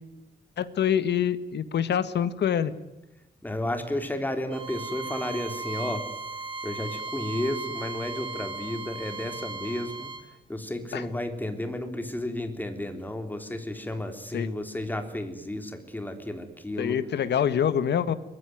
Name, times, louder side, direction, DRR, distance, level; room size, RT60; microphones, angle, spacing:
voice 1, 0.6-2.7 10.9-11.0 14.3-14.5 16.8-18.1, left 9 dB, 80° left, 13 dB, 1.7 m, -25 dB
voice 2, 3.4-6.0 6.6-10.1 10.5-17.0, left 1 dB, 10° left, 7 dB, 3.6 m, -32 dB
Bowed string instrument, 4.5-10.3, right 3 dB, 30° right, 3.3 m, -36 dB
23.5 x 21.0 x 9.4 m, 0.92 s
wide cardioid pair, 140°, 17 cm